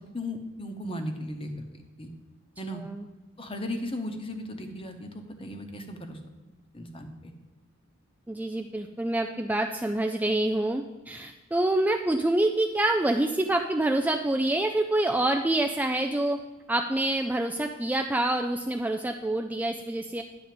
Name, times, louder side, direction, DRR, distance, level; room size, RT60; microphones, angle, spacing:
voice 1, 0.1-1.6 2.0-2.1 2.6-2.8 3.4-6.2 6.7-7.3, left 1 dB, 25° left, 5 dB, 1.0 m, -36 dB
voice 2, 8.3-16.4 16.7-20.2, right 1 dB, 10° right, 4 dB, 0.3 m, -26 dB
10.5 x 4.0 x 7.6 m, 1.2 s
head